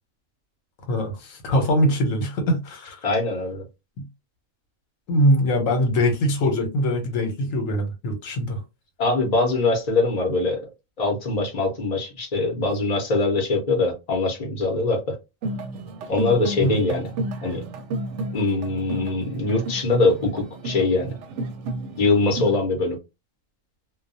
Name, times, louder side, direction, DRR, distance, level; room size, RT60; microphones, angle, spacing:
voice 1, 0.9-3.0 5.1-8.6 16.6-16.8, equal, 80° left, 1.1 m, -22 dB
voice 2, 3.0-3.6 9.0-10.6 11.0-15.1 16.1-17.1 17.4-17.6 18.3-21.1 22.0-23.0, left 3 dB, 40° left, 0.7 m, -22 dB
sound 1, 15.4-22.6, right 2 dB, 70° right, 0.8 m, -32 dB
2.3 x 2.2 x 2.6 m
omnidirectional pair, 1.4 m